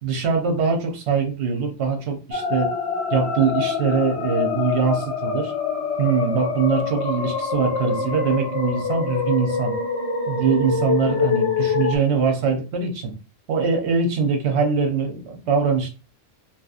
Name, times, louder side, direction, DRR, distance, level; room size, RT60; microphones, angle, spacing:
voice 1, 0.0-2.7 3.1-5.5 6.0-9.8 10.3-13.1 13.5-15.9, right 5 dB, 80° right, 3 dB, 0.9 m, -22 dB
sound 1, 2.3-12.0, left 5 dB, 90° left, 0.9 m, -25 dB
2.8 x 2.2 x 2.4 m, 0.32 s
omnidirectional pair, 1.1 m